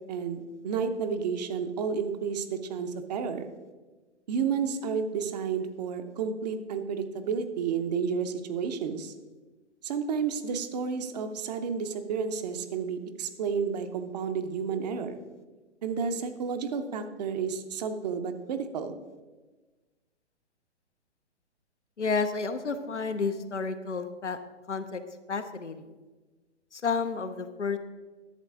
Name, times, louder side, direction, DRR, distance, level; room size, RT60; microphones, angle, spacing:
voice 1, 0.0-3.5 4.3-9.1 9.8-15.2 15.8-18.9, right 6 dB, 35° right, 8 dB, 0.7 m, -31 dB
voice 2, 22.0-24.4 24.7-25.0 25.3-25.9 26.7-27.8, left 4 dB, 85° left, 8 dB, 0.9 m, -31 dB
11.0 x 7.5 x 3.6 m, 1.3 s
figure-of-eight pair, 120°, 35 cm